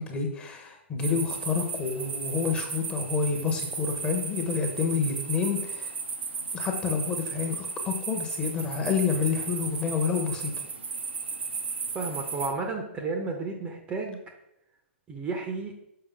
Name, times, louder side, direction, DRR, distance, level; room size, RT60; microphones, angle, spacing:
voice 1, 0.0-5.9 6.5-10.5, left 5 dB, 15° left, 3 dB, 1.1 m, -29 dB
sound 1, 1.0-12.5, right 5 dB, 65° right, 0.8 m, -35 dB
voice 2, 11.9-14.2 15.1-15.7, right 3 dB, 15° right, 3 dB, 0.8 m, -32 dB
6.8 x 5.2 x 3.5 m, 0.80 s
figure-of-eight pair, 115°, 7 cm